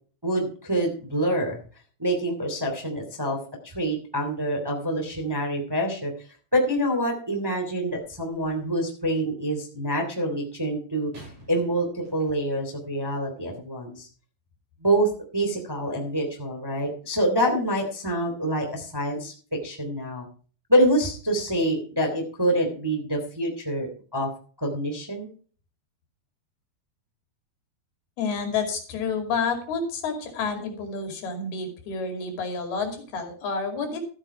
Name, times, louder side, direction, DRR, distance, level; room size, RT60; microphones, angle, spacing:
voice 1, 0.2-1.6 2.0-3.4 3.6-6.1 6.5-11.1 11.5-14.1 14.8-19.3 19.6-20.3 20.7-24.3 24.6-25.3, right 1 dB, 5° right, 2 dB, 2.3 m, -26 dB
sound 1, 7.9-8.7 11.1-12.7 13.5-13.6, right 1 dB, 45° right, 8.0 m, -50 dB
voice 2, 28.2-34.0, left 5 dB, 70° left, 4 dB, 4.4 m, -29 dB
13.5 x 9.0 x 4.5 m, 0.41 s
omnidirectional pair, 4.7 m